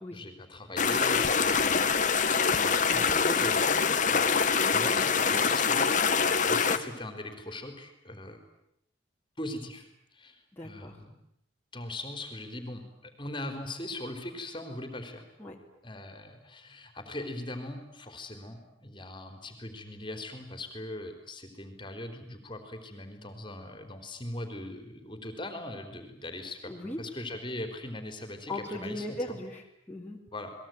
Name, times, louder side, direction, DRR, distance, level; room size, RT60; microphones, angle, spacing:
voice 1, 0.1-3.7 4.1-4.3 4.7-8.4 9.4-9.9 10.1-11.1 11.7-15.2 15.8-29.4 30.3-30.5, left 1 dB, 25° left, 7 dB, 4.1 m, -40 dB
sound 1, 0.8-6.8, left 5 dB, 40° left, 1.7 m, -25 dB
voice 2, 2.8-4.5 10.5-11.0 15.4-15.5 26.7-27.0 28.5-30.2, left 1 dB, 10° left, -4 dB, 3.7 m, -39 dB
30.0 x 21.5 x 9.3 m, 0.78 s
head